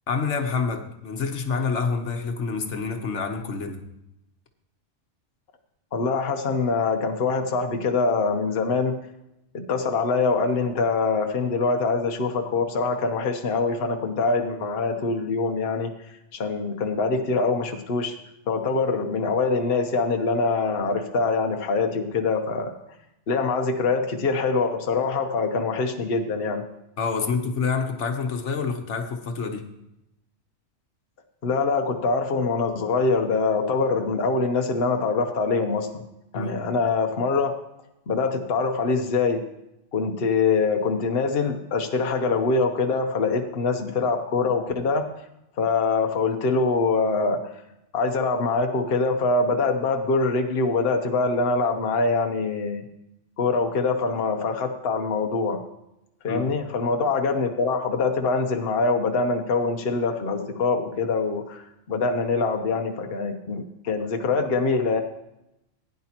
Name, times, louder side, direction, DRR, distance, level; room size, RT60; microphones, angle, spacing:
voice 1, 0.1-3.8 27.0-29.7 36.3-36.5 56.3-56.4, left 5 dB, 75° left, 6 dB, 1.3 m, -27 dB
voice 2, 5.9-9.0 9.5-15.9 16.3-18.1 18.5-22.7 23.3-26.6 31.4-36.0 36.3-37.5 38.1-39.4 39.9-45.1 45.6-47.4 47.9-52.9 53.4-55.6 56.2-61.6 61.9-65.0, left 4 dB, 55° left, 4 dB, 1.0 m, -24 dB
16.0 x 9.7 x 2.9 m, 0.86 s
omnidirectional pair, 1.2 m